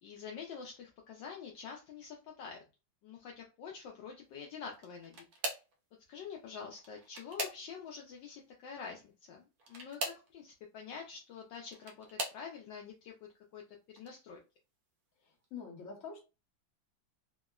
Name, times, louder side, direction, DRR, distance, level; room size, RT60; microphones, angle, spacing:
voice 1, 0.0-2.6 3.0-5.2 6.1-13.1 13.5-13.6 13.9-14.4, left 6 dB, 75° left, 0 dB, 1.2 m, -47 dB
sound 1, 4.7-5.8 6.7-8.0 9.6-10.3 11.4-12.5 13.2-13.6 14.0-14.1 15.4-15.5, right 2 dB, 60° right, 1.1 m, -41 dB
voice 2, 15.2-16.2, left 6 dB, 50° left, -1 dB, 1.1 m, -46 dB
3.4 x 2.0 x 2.3 m, 0.29 s
omnidirectional pair, 2.2 m